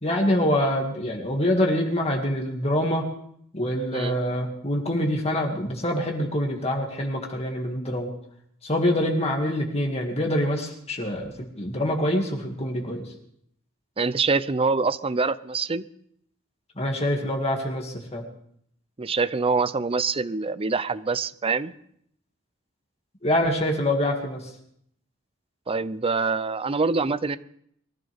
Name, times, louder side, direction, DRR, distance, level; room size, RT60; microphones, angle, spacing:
voice 1, 0.0-3.0 3.5-8.1 8.6-13.0 16.8-18.2 23.2-24.4, left 1 dB, 30° left, 1 dB, 2.2 m, -25 dB
voice 2, 14.0-15.8 19.0-21.7 25.7-27.4, right 4 dB, 25° right, 16 dB, 0.5 m, -25 dB
23.0 x 14.5 x 3.5 m, 0.68 s
head